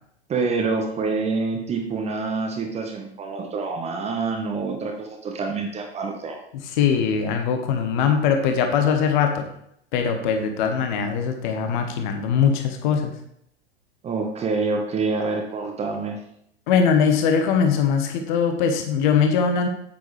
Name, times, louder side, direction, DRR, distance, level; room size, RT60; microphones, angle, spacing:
voice 1, 0.3-6.4 14.0-16.2, right 4 dB, 20° right, 2 dB, 1.2 m, -26 dB
voice 2, 6.5-9.5 9.9-13.1 16.7-19.7, left 6 dB, 45° left, 5 dB, 1.2 m, -21 dB
8.5 x 8.3 x 3.3 m, 0.71 s
figure-of-eight pair, 95°, 33 cm